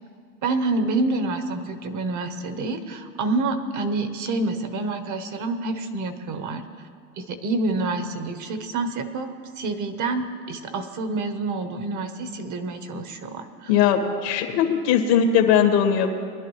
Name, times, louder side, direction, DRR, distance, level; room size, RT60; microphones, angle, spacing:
voice 1, 0.4-6.6 7.2-13.7, right 3 dB, 40° right, 9 dB, 1.2 m, -27 dB
voice 2, 13.7-16.1, left 8 dB, 80° left, 4 dB, 2.0 m, -19 dB
22.0 x 11.0 x 3.2 m, 2.1 s
supercardioid pair, 120°, 48 cm